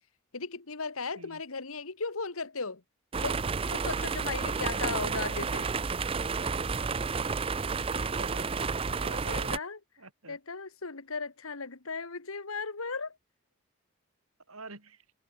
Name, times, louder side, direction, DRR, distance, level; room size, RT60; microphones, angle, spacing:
voice 1, 0.3-2.8 3.2-3.4 3.7-5.7 9.3-9.8 10.3-13.2, left 4 dB, 80° left, 1.7 m, -36 dB
sound 1, 3.1-9.6, right 5 dB, 25° right, 0.5 m, -31 dB
voice 2, 8.2-8.7 9.0-9.6 10.0-10.4 14.5-15.0, right 3 dB, 85° right, 7.3 m, -46 dB
head